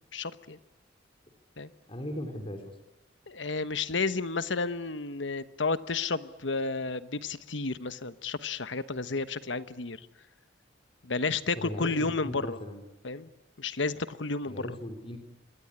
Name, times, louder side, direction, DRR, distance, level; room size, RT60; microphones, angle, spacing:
voice 1, 0.1-0.6 1.6-1.7 3.3-10.0 11.0-12.6 13.0-13.3 13.6-14.8, left 4 dB, 75° left, 13 dB, 1.2 m, -31 dB
voice 2, 1.9-2.7 11.6-12.8 14.5-15.2, equal, 30° left, 5 dB, 3.5 m, -38 dB
26.5 x 22.5 x 9.9 m, 0.91 s
head